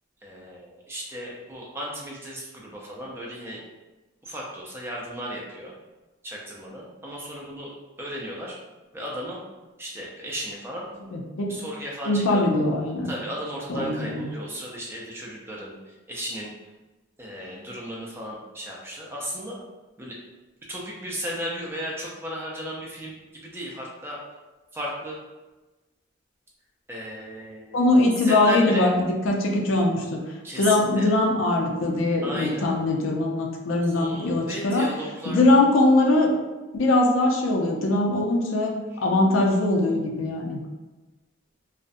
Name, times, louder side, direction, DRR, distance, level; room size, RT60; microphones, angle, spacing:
voice 1, 0.2-3.6 4.2-5.7 6.2-7.7 8.0-8.6 8.9-9.4 9.8-11.0 11.5-12.4 13.0-16.5 17.2-19.6 20.0-20.2 20.7-24.2 24.7-25.2 26.9-27.9 28.2-28.9 30.4-31.1 32.2-32.7 33.8-35.4 38.9-39.0, equal, 10° right, -3 dB, 0.4 m, -35 dB
voice 2, 11.1-11.5 12.1-13.1 13.7-14.3 27.7-30.2 30.6-34.9 35.3-36.3 36.7-38.7 39.0-40.6, left 2 dB, 90° left, 1 dB, 0.5 m, -21 dB
2.4 x 2.0 x 2.5 m, 1.2 s
head